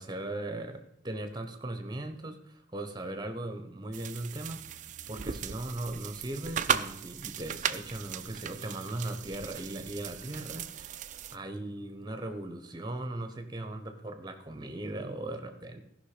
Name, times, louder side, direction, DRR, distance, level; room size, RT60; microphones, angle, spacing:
voice 1, 0.0-11.0 11.3-15.8, right 1 dB, 20° right, 7 dB, 1.1 m, -38 dB
sound 1, 3.9-11.4, right 8 dB, 40° right, 0.4 m, -36 dB
14.5 x 5.8 x 5.1 m, 0.86 s
head